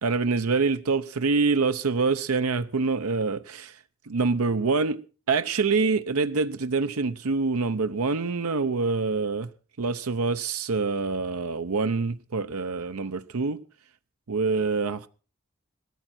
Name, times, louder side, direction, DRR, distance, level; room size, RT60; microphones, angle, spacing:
voice 1, 0.0-3.8 4.1-5.0 5.3-9.5 9.8-13.6 14.3-15.1, right 4 dB, 90° right, 0.7 m, -25 dB
18.0 x 13.5 x 4.3 m
head